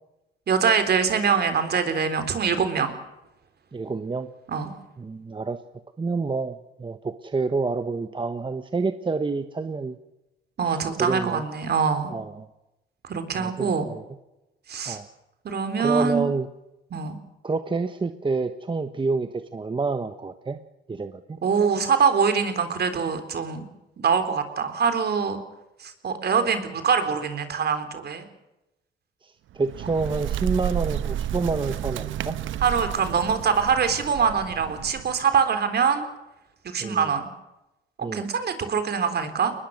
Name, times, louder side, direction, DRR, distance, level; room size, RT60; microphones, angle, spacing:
voice 1, 0.5-2.9 4.5-4.7 10.6-12.1 13.0-13.9 14.7-15.0 15.4-16.3 16.9-17.2 21.4-23.6 24.0-25.4 25.8-28.2 32.6-36.1 36.6-37.3 38.1-39.5, right 6 dB, 55° right, 8 dB, 3.8 m, -24 dB
voice 2, 3.7-4.3 5.0-5.6 6.0-10.0 10.7-11.4 12.1-12.5 13.4-14.0 14.9-15.1 15.8-16.5 17.4-20.6 20.9-21.4 29.2-32.4 36.8-37.1 38.0-38.2, right 4 dB, 25° right, 9 dB, 1.2 m, -28 dB
Bird, 29.5-35.2, right 11 dB, 75° right, 1.1 m, -31 dB
22.5 x 20.5 x 6.6 m, 0.95 s
cardioid pair, 90°, 20 cm